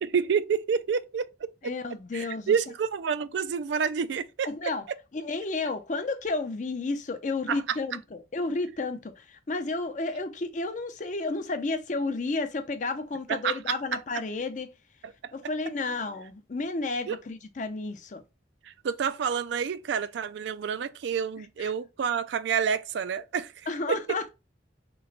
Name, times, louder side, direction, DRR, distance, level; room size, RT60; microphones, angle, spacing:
voice 1, 0.0-1.3 2.1-4.5 7.5-7.8 13.3-13.7 15.0-15.1 17.1-17.2 18.7-23.5 23.9-24.0, right 6 dB, 75° right, 0.3 m, -28 dB
voice 2, 1.6-2.5 4.4-4.8 5.1-14.7 15.3-18.2 21.6-21.7 23.7-24.3, left 3 dB, 40° left, 0.5 m, -32 dB
3.3 x 3.1 x 3.9 m
head